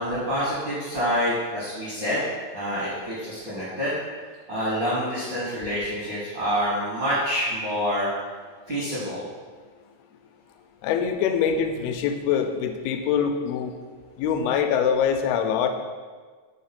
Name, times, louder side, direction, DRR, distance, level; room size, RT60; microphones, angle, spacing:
voice 1, 0.0-2.2 2.5-4.0 4.5-8.1 8.7-9.2, equal, 60° right, -10 dB, 1.1 m, -27 dB
voice 2, 10.8-13.7 14.2-15.7, left 7 dB, 90° left, 6 dB, 2.5 m, -24 dB
5.6 x 3.7 x 5.8 m, 1.5 s
omnidirectional pair, 4.3 m